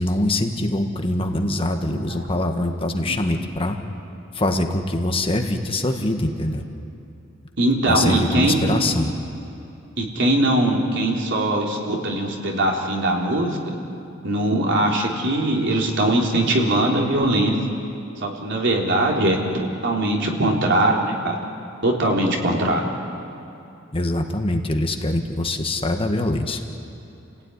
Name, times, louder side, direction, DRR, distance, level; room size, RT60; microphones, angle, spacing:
voice 1, 0.0-3.8 4.3-6.6 7.9-9.1 23.9-26.6, left 1 dB, 30° left, 4 dB, 1.6 m, -23 dB
voice 2, 7.6-8.8 10.0-13.6 14.2-17.6 18.2-21.4 21.8-22.8, right 1 dB, 60° right, -1 dB, 3.8 m, -21 dB
29.0 x 16.5 x 9.9 m, 2.8 s
head